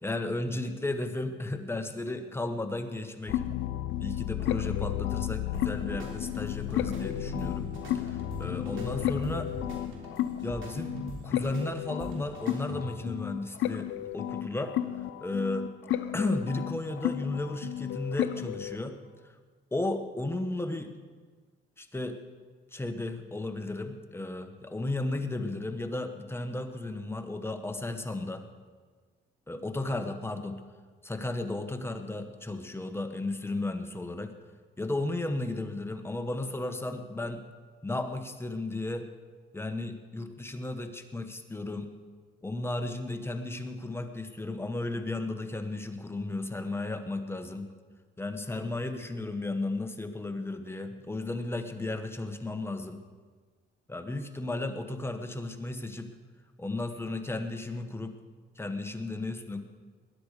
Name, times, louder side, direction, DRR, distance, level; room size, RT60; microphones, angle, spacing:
voice 1, 0.0-3.6 4.0-7.7 8.0-9.5 10.4-11.0 11.2-14.7 15.2-15.7 16.1-19.0 19.2-19.3 19.7-20.9 21.8-22.2 22.7-28.5 29.5-30.6 31.0-34.3 34.8-37.4 37.8-39.1 39.5-41.9 42.4-47.7 48.2-53.0 53.9-56.1 56.6-58.1 58.6-59.6, left 2 dB, 10° left, 7 dB, 1.4 m, -34 dB
sound 1, 3.3-18.8, left 12 dB, 80° left, 0.7 m, -33 dB
sound 2, 5.5-13.2, right 2 dB, 75° right, 3.3 m, -43 dB
20.5 x 10.0 x 5.1 m, 1.5 s
cardioid pair, 90°, 20 cm